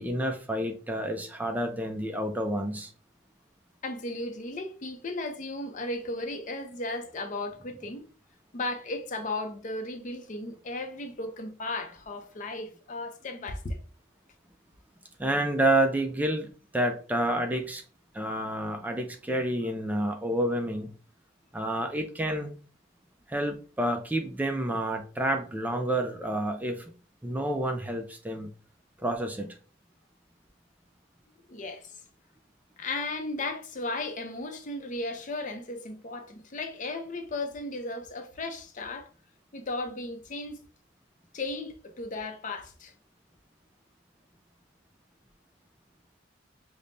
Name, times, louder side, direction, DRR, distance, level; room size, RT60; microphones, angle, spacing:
voice 1, 0.0-2.9 15.2-17.8 18.1-20.9 21.5-22.5 23.3-26.9 27.2-28.5 29.0-29.6, right 1 dB, 10° right, 0.3 m, -29 dB
voice 2, 3.8-8.1 8.5-13.8 31.5-32.0 32.8-39.1 39.5-40.6 41.3-42.9, left 2 dB, 45° left, 0.5 m, -35 dB
5.1 x 2.1 x 2.6 m
head